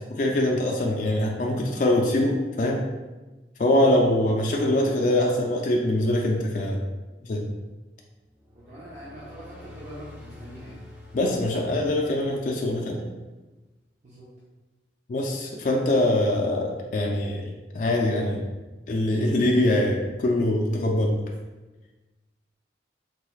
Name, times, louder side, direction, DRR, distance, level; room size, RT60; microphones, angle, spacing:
voice 1, 0.0-2.8 3.6-6.8 7.2-7.5 11.1-13.0 15.1-18.4 18.9-21.1, left 1 dB, 45° left, -1 dB, 0.4 m, -23 dB
sound 1, 8.2-12.9, left 2 dB, 10° right, 0.6 m, -47 dB
voice 2, 8.5-10.8 14.0-14.3, equal, 45° right, -9 dB, 0.7 m, -43 dB
4.0 x 3.1 x 2.3 m, 1.2 s
head